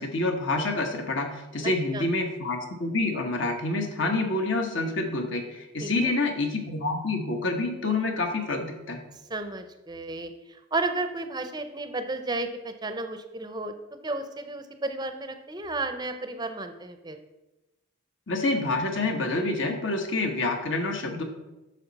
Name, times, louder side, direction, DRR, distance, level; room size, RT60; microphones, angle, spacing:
voice 1, 0.0-9.0 18.3-21.2, left 2 dB, 60° left, 4 dB, 1.2 m, -27 dB
voice 2, 5.8-6.1 9.3-10.3 10.7-13.7 14.0-17.2, right 2 dB, 20° right, 8 dB, 0.6 m, -32 dB
9.0 x 6.4 x 4.1 m, 1.0 s
head